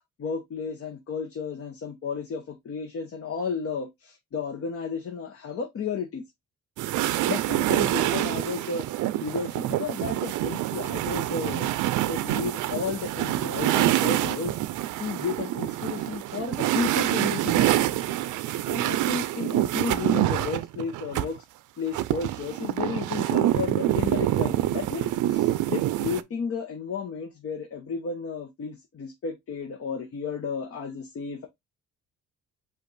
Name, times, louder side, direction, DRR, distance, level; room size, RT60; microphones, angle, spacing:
voice 1, 0.2-6.2 7.3-8.9 9.2-11.7 12.1-14.6 15.0-18.4 18.7-21.5 21.8-31.5, left 5 dB, 50° left, 0.9 m, -33 dB
sound 1, 6.8-21.3 21.9-26.2, right 14 dB, 80° right, 0.5 m, -26 dB
5.1 x 2.5 x 4.0 m
cardioid pair, 90°, 30 cm